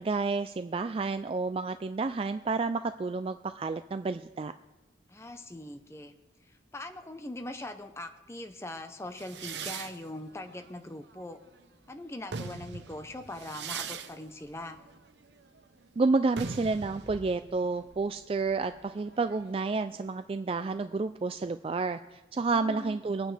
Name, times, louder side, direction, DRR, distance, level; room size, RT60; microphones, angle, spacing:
voice 1, 0.0-4.5 16.0-23.3, right 3 dB, 30° right, 10 dB, 0.3 m, -30 dB
voice 2, 5.1-6.1 6.7-11.4 11.9-14.8 22.5-23.0, left 1 dB, 15° left, 7 dB, 0.7 m, -41 dB
sound 1, 9.2-11.6 12.1-19.6, right 5 dB, 85° right, 0.8 m, -42 dB
24.0 x 9.2 x 3.3 m, 1.1 s
head